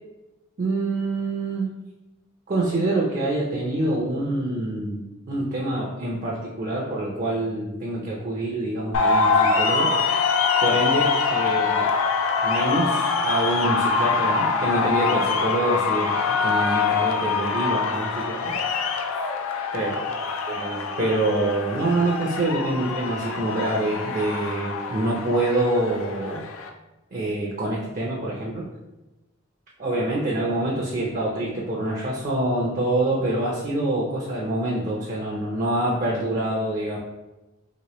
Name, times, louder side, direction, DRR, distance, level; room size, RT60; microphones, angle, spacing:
voice 1, 0.6-1.7 2.5-5.0 5.3-9.9 10.6-11.9 12.4-18.5 19.7-20.0 20.5-26.4 27.1-28.6 29.8-37.0, right 1 dB, 40° right, -3 dB, 0.5 m, -26 dB
sound 1, 8.9-26.7, left 4 dB, 85° left, 0.4 m, -24 dB
3.0 x 2.9 x 2.9 m, 1.0 s
head